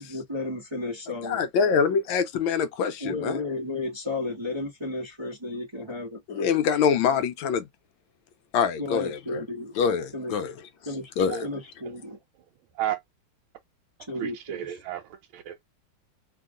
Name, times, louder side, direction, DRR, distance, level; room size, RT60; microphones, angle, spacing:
voice 1, 0.0-1.7 3.0-6.5 7.0-7.2 8.8-9.8 10.1-10.4 10.9-11.1 11.4-12.2 14.1-14.8, left 2 dB, 25° right, 0.6 m, -33 dB
voice 2, 1.2-3.4 6.3-7.7 8.5-9.4 9.8-10.5 11.2-11.5, left 6 dB, 75° left, 1.3 m, -25 dB
voice 3, 14.2-15.7, right 12 dB, 75° right, 1.4 m, -33 dB
3.0 x 3.0 x 3.6 m
omnidirectional pair, 2.3 m